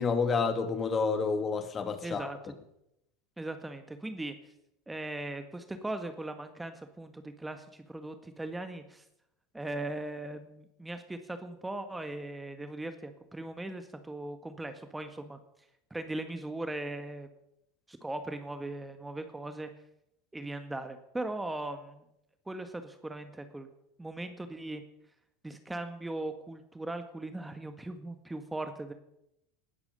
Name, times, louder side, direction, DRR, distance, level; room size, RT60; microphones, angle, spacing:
voice 1, 0.0-2.3, left 5 dB, 30° left, 8 dB, 2.5 m, -29 dB
voice 2, 2.0-2.4 3.4-4.3 4.9-9.0 9.5-15.4 15.9-17.3 17.9-19.7 20.3-22.0 22.4-23.7 24.0-24.8 25.4-28.9, right 2 dB, 10° right, 8 dB, 1.7 m, -39 dB
19.0 x 13.0 x 5.5 m, 0.81 s
hypercardioid pair, 80°, 0 cm